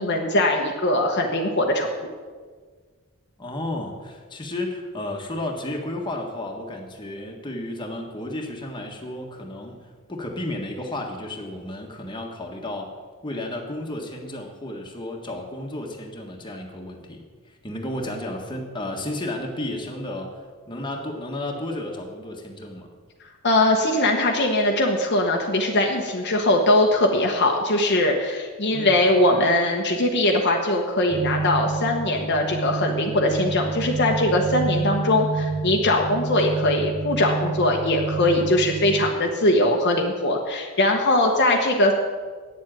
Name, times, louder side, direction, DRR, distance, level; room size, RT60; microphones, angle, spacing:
voice 1, 0.0-1.9 23.4-41.9, left 1 dB, 50° left, 1 dB, 1.1 m, -21 dB
voice 2, 3.4-9.8 10.1-12.9 13.2-22.9 28.7-29.0, left 1 dB, 20° left, 1 dB, 1.6 m, -32 dB
sound 1, 31.1-39.1, right 4 dB, 45° right, 1.0 m, -29 dB
9.3 x 7.5 x 9.0 m, 1.5 s
head